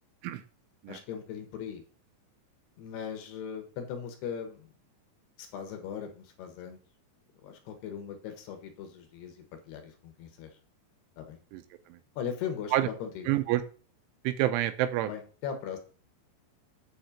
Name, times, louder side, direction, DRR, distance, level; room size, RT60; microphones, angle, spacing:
voice 1, 0.9-1.8 2.8-4.7 5.4-6.8 7.4-10.5 11.2-11.4 12.2-13.3 15.0-15.8, left 8 dB, 70° left, 5 dB, 3.0 m, -39 dB
voice 2, 13.3-13.6 14.2-15.1, right 14 dB, 85° right, 10 dB, 3.1 m, -27 dB
9.3 x 4.3 x 7.1 m, 0.38 s
omnidirectional pair, 5.7 m